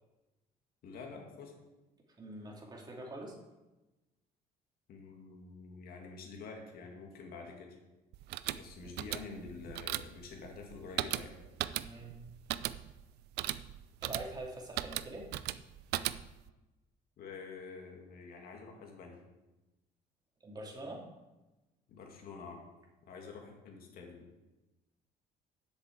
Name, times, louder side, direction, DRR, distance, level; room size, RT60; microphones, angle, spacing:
voice 1, 0.8-1.5 4.9-7.7 8.5-11.3 17.2-19.2 21.9-22.6 23.0-24.3, left 4 dB, 65° left, 1 dB, 2.3 m, -47 dB
voice 2, 2.2-3.4 11.8-12.2 14.0-15.3 20.4-21.0, right 1 dB, 25° right, -1 dB, 2.8 m, -44 dB
sound 1, 8.1-16.5, right 14 dB, 80° right, 0.5 m, -38 dB
8.0 x 6.7 x 8.4 m, 1.1 s
cardioid pair, 110°, 17 cm